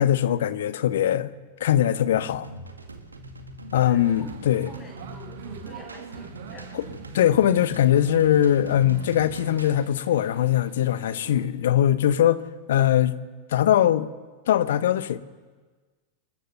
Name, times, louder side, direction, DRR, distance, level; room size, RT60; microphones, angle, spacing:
voice 1, 0.0-1.3 1.6-2.5 3.7-4.7 7.1-12.4 12.7-13.1 13.5-14.1 14.5-15.2, left 11 dB, 60° left, 1.0 m, -21 dB
sound 1, 2.4-9.8, right 2 dB, 80° right, 2.1 m, -42 dB
voice 2, 3.8-4.3 4.7-7.0, equal, 20° left, 7.9 m, -47 dB
sound 2, 4.0-11.5, right 8 dB, 55° right, 2.1 m, -44 dB
27.0 x 15.0 x 6.9 m
figure-of-eight pair, 90°, 0 cm